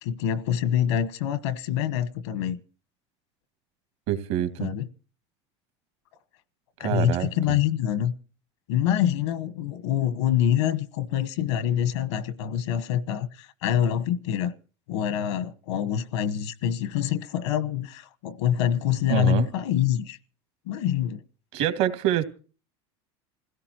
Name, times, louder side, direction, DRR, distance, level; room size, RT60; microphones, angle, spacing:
voice 1, 0.0-2.6 4.6-4.9 6.8-8.1 8.7-14.5 14.9-20.2 20.7-21.2, left 10 dB, 90° left, 1.2 m, -26 dB
voice 2, 4.1-4.7 6.8-7.3 19.1-19.5 21.5-22.2, right 12 dB, 75° right, 2.4 m, -25 dB
28.0 x 16.5 x 3.0 m
supercardioid pair, 115°, 14 cm